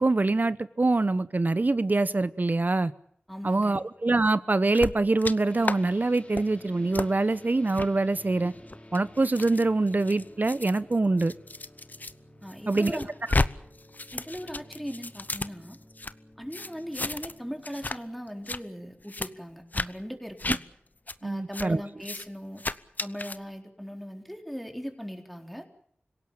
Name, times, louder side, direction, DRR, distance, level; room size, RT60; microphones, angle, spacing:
voice 1, 0.0-2.9 3.4-8.5 8.9-11.3 12.7-13.0 21.2-21.8, right 2 dB, 45° right, 1.0 m, -24 dB
voice 2, 3.3-3.8 12.4-13.1 14.1-15.8 16.4-20.6 21.2-22.6 23.0-25.7, equal, ahead, 4.1 m, -39 dB
sound 1, 4.7-5.3 5.6-5.8 6.1-6.4 6.9-7.1 7.7-7.9 8.5-12.1 12.5-13.5 13.8-16.1 16.5-17.4 17.6-18.0 18.3-18.6 19.1-19.3 19.7-19.9 20.4-20.6 21.1-21.2 21.5-21.7 22.0-22.3 22.6-23.4, left 2 dB, 45° left, 1.0 m, -32 dB
sound 2, 5.5-19.7, left 1 dB, 30° left, 4.6 m, -53 dB
26.0 x 17.0 x 8.9 m
wide cardioid pair, 50°, 4 cm